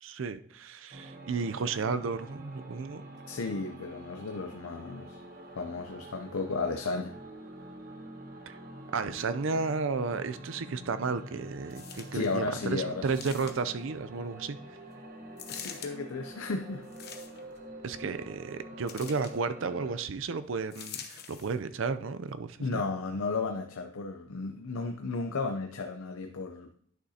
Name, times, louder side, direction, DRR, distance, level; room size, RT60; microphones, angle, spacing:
voice 1, 0.0-3.0 8.5-8.6 8.9-14.6 17.8-22.8, right 4 dB, 65° right, 0.5 m, -33 dB
sound 1, 0.9-20.0, right 1 dB, 40° right, 1.0 m, -46 dB
voice 2, 3.3-5.2 5.6-7.1 12.1-13.1 15.5-16.8 22.6-26.7, left 3 dB, 80° left, 0.6 m, -34 dB
sound 2, 11.7-12.4 13.1-13.8 15.4-15.9 16.8-17.6 18.9-19.4 20.7-21.6 22.3-22.4, left 8 dB, 50° left, 0.9 m, -45 dB
11.0 x 6.3 x 2.8 m
head